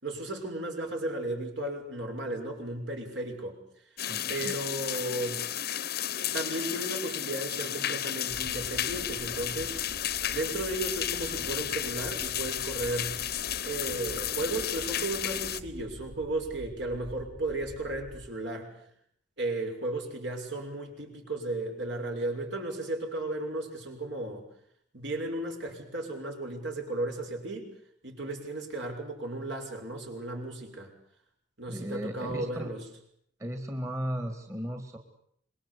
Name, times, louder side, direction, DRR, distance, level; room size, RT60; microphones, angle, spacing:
voice 1, 0.0-3.6 4.3-5.5 6.3-9.8 10.3-13.2 13.6-18.7 19.4-24.5 24.9-27.7 28.0-30.9 31.6-32.8, right 2 dB, 60° right, 3 dB, 6.5 m, -34 dB
sound 1, 4.0-15.6, left 11 dB, 50° left, 1.0 m, -33 dB
voice 2, 4.0-4.6 31.7-32.7 33.4-35.0, equal, 15° right, 6 dB, 2.1 m, -36 dB
sound 2, 8.3-18.3, equal, 30° right, 4.3 m, -47 dB
26.5 x 22.5 x 8.4 m, 0.67 s
head